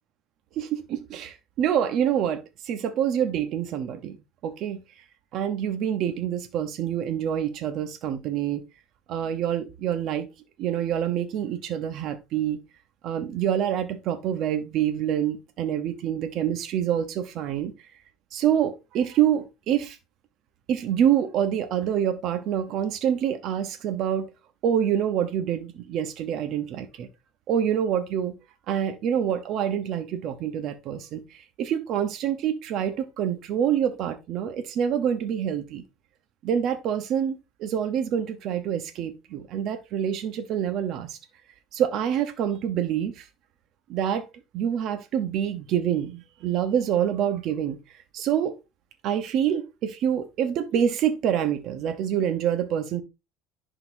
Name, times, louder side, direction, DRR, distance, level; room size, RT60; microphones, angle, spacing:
voice 1, 0.6-4.2 4.4-4.8 5.3-8.6 9.1-10.3 10.6-12.6 13.0-17.9 18.3-20.0 20.7-24.3 24.6-27.1 27.5-28.4 28.7-35.8 36.4-41.2 41.7-43.3 43.9-44.3 44.5-48.5 49.0-53.0, right 9 dB, 50° right, 0.8 m, -26 dB
10.5 x 3.9 x 2.6 m
cardioid pair, 140°, 0 cm